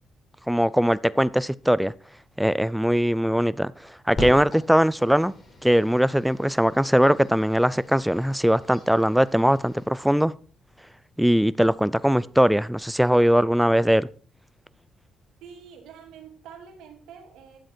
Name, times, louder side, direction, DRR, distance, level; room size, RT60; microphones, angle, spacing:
voice 1, 0.5-1.9 2.4-3.7 4.1-5.3 5.6-10.3 11.2-14.1, equal, ahead, 0.5 m, -20 dB
sound 1, 4.1-9.8, left 1 dB, 35° left, 5.1 m, -40 dB
voice 2, 15.4-17.6, right 7 dB, 85° right, 2.5 m, -46 dB
11.5 x 7.8 x 4.5 m
cardioid pair, 90°, 0 cm